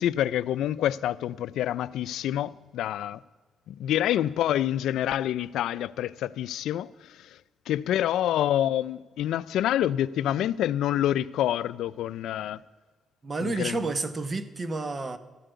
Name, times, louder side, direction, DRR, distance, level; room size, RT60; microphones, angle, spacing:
voice 1, 0.0-3.2 3.7-7.4 7.7-12.6 13.4-13.8, left 12 dB, 85° left, 0.3 m, -27 dB
voice 2, 13.2-15.2, right 3 dB, 35° right, 1.1 m, -30 dB
13.0 x 7.6 x 8.1 m
cardioid pair, 85°, 0 cm